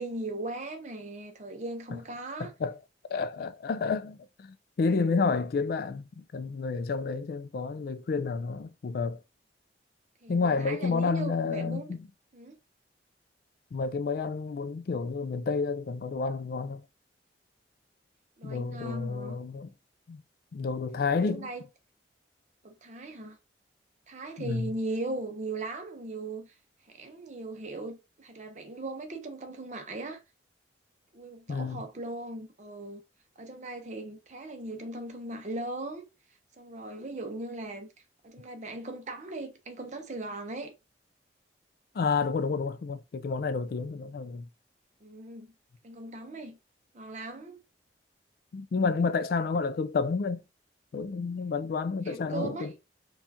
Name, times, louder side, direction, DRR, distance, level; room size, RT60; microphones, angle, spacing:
voice 1, 0.0-2.5 10.2-11.9 12.3-12.6 18.4-19.4 21.2-21.6 22.6-23.4 24.1-26.5 26.8-30.2 31.1-33.0 33.4-36.1 36.6-37.9 38.2-40.7 45.0-45.5 45.8-46.6 46.9-47.6 52.0-52.7, right 2 dB, 40° right, 0.7 m, -38 dB
voice 2, 2.4-2.8 3.1-9.2 10.3-12.0 13.7-16.8 18.4-19.7 20.1-20.2 20.5-21.5 24.4-24.7 31.5-31.8 41.9-44.4 48.5-50.4 50.9-52.8, left 4 dB, 55° left, 0.3 m, -30 dB
4.3 x 2.3 x 2.7 m
head